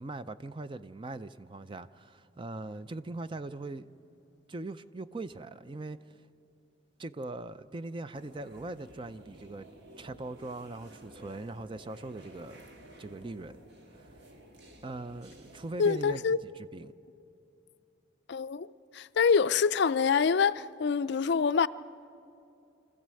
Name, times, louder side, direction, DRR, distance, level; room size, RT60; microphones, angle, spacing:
voice 1, 0.0-3.9 4.5-6.0 7.0-9.7 10.0-12.7 13.0-13.5 13.9-14.1 14.8-16.9, right 2 dB, 25° right, 0.4 m, -41 dB
sound 1, 8.1-16.3, right 1 dB, 60° right, 1.7 m, -53 dB
voice 2, 15.8-16.4 18.3-18.7 18.9-21.7, left 6 dB, 60° left, 0.4 m, -25 dB
25.0 x 15.0 x 7.6 m
head